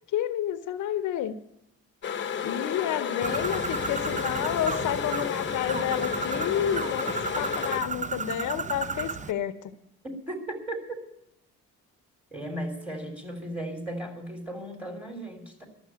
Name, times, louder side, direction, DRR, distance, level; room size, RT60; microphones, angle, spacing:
voice 1, 0.1-1.4 2.4-9.6, left 10 dB, 80° left, 11 dB, 0.8 m, -30 dB
sound 1, 2.0-7.8, left 8 dB, 40° left, 0.9 m, -32 dB
Bird, 3.2-9.3, right 5 dB, 25° right, 0.6 m, -34 dB
voice 2, 10.0-11.0 12.3-15.7, right 1 dB, 5° right, 4 dB, 3.2 m, -36 dB
12.0 x 7.3 x 9.5 m, 0.81 s
cardioid pair, 90°, 30 cm